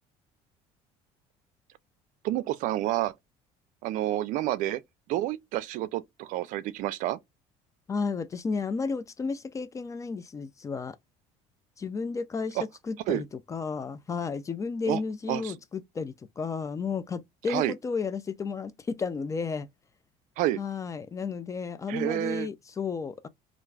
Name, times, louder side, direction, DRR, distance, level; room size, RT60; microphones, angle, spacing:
voice 1, 2.2-3.1 3.8-4.8 5.1-7.2 12.6-12.7 13.1-13.2 14.9-15.0 15.3-15.5 17.5-17.7 20.4-20.6 21.9-22.5, right 14 dB, 70° right, 0.4 m, -29 dB
voice 2, 7.9-11.0 11.8-12.6 12.8-19.7 20.6-23.3, left 5 dB, 25° left, 0.3 m, -33 dB
2.5 x 2.2 x 3.1 m
cardioid pair, 110°, 14 cm